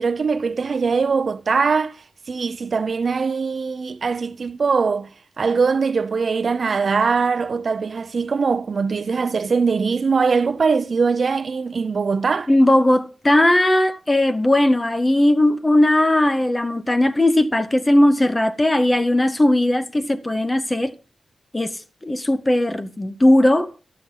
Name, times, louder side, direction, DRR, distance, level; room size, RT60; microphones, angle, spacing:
voice 1, 0.0-2.0 2.3-5.1 5.4-12.5, right 5 dB, 50° right, 0.5 m, -21 dB
voice 2, 12.5-20.9 21.5-23.7, left 1 dB, 15° left, 0.7 m, -18 dB
13.0 x 7.6 x 5.5 m
wide cardioid pair, 165°, 0 cm